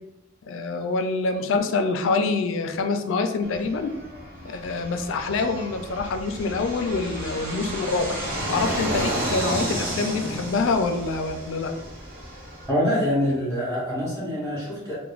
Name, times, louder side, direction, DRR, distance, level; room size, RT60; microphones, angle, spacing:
voice 1, 0.5-3.9 4.5-8.2 8.5-11.7, left 3 dB, 70° left, 6 dB, 0.3 m, -26 dB
Fixed-wing aircraft airplane, 3.4-12.7, right 1 dB, 45° right, 0.6 m, -32 dB
voice 2, 12.7-14.9, equal, 20° right, -8 dB, 1.3 m, -25 dB
3.1 x 2.1 x 2.4 m, 0.94 s
head